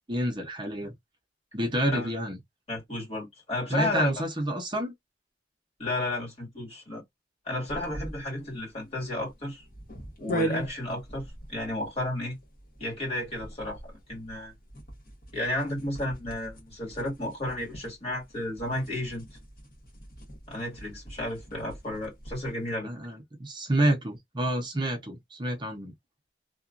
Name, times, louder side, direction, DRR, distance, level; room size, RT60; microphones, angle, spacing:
voice 1, 0.1-0.9 1.5-2.4 3.7-4.9 22.8-25.9, right 1 dB, 25° right, 0.7 m, -28 dB
voice 2, 2.7-4.1 5.8-7.0 7.5-9.7 10.2-12.4 12.8-14.5 15.3-19.3 20.5-22.9, left 1 dB, 35° left, 1.9 m, -33 dB
sound 1, 7.7-22.6, right 1 dB, 55° left, 1.2 m, -41 dB
2.9 x 2.4 x 2.4 m
head